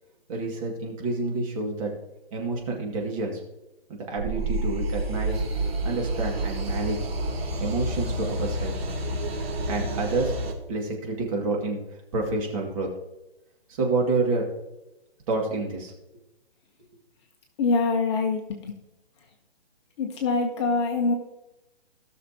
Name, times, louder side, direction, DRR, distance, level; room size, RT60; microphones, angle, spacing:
voice 1, 0.3-1.9 2.3-3.4 3.9-5.4 5.8-7.0 7.6-8.8 9.7-10.4 10.7-11.8 12.1-12.9 13.8-14.5 15.3-15.9, right 3 dB, 35° right, 0 dB, 2.4 m, -28 dB
sound 1, 4.1-10.5, right 1 dB, 65° right, 3.0 m, -29 dB
voice 2, 17.6-18.8 20.0-21.1, left 3 dB, 25° left, 2 dB, 1.1 m, -24 dB
18.0 x 6.5 x 3.0 m, 0.94 s
hypercardioid pair, 155°, 32 cm